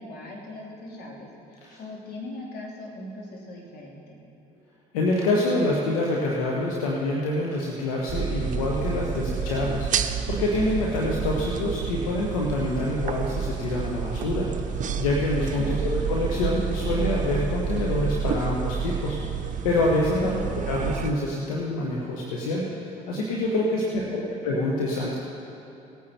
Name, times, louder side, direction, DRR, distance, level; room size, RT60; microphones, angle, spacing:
voice 1, 0.0-4.2 15.6-15.9 20.2-20.5 23.7-24.4, left 1 dB, 60° left, -2 dB, 3.0 m, -40 dB
voice 2, 4.9-19.2 19.6-20.3 20.7-25.2, left 2 dB, 90° left, -3 dB, 1.3 m, -26 dB
sound 1, 8.1-21.1, right 7 dB, 45° right, 0.8 m, -29 dB
18.5 x 9.3 x 4.4 m, 2.8 s
hypercardioid pair, 65°, 18 cm